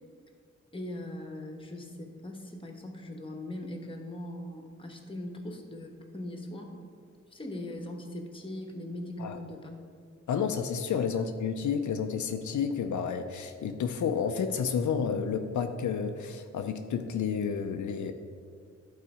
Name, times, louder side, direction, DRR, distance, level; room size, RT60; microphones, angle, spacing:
voice 1, 0.7-6.8 7.3-9.8, left 1 dB, 20° left, 3 dB, 1.2 m, -40 dB
voice 2, 10.3-18.1, left 6 dB, 85° left, 7 dB, 0.5 m, -30 dB
11.0 x 4.1 x 4.9 m, 2.1 s
cardioid pair, 90°, 29 cm